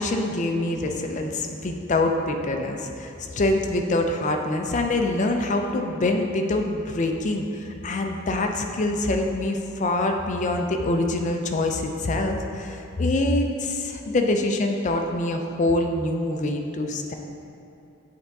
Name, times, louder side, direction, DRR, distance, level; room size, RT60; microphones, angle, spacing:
voice 1, 0.0-17.1, left 2 dB, 35° left, 4 dB, 0.4 m, -25 dB
7.7 x 3.5 x 4.0 m, 2.7 s
head